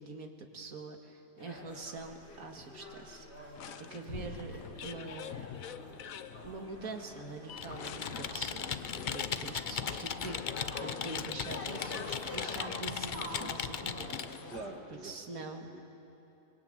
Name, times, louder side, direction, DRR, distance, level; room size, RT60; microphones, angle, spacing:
voice 1, 0.0-5.5 6.4-14.1 15.0-15.7, right 3 dB, 55° right, 3 dB, 2.3 m, -45 dB
sound 1, 1.4-14.8, left 1 dB, 40° left, 3.5 m, -47 dB
sound 2, 3.5-14.8, left 9 dB, 60° left, 1.1 m, -48 dB
Computer keyboard, 7.5-14.4, left 7 dB, 80° left, 0.4 m, -38 dB
voice 2, 14.5-15.8, right 3 dB, 80° right, 3 dB, 2.6 m, -46 dB
24.5 x 22.0 x 9.0 m, 2.9 s
omnidirectional pair, 1.8 m